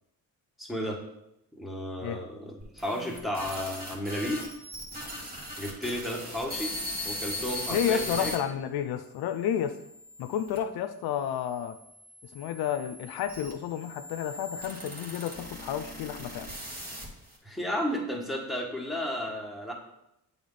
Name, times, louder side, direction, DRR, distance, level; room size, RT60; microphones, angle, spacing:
voice 1, 0.6-1.0 1.5-4.5 5.6-6.7 7.0-8.3 17.4-19.7, equal, ahead, -2 dB, 1.6 m, -33 dB
sound 1, 2.6-8.4 9.0-10.6 11.4-17.4, left 1 dB, 25° right, 1.8 m, -39 dB
voice 2, 7.7-9.8 10.2-11.8 12.3-16.5, left 9 dB, 80° left, 9 dB, 0.5 m, -31 dB
8.4 x 3.5 x 4.0 m, 0.83 s
cardioid pair, 70°, 37 cm